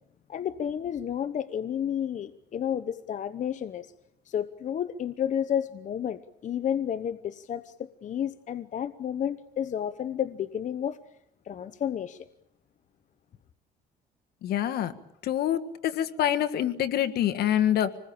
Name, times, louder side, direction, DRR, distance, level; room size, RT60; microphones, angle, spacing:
voice 1, 0.3-3.9 4.3-11.0 11.4-12.2, left 9 dB, 45° left, 0.9 m, -31 dB
voice 2, 14.4-14.9 15.2-18.0, left 11 dB, 70° left, 1.7 m, -26 dB
26.0 x 20.5 x 8.7 m
cardioid pair, 110°, 17 cm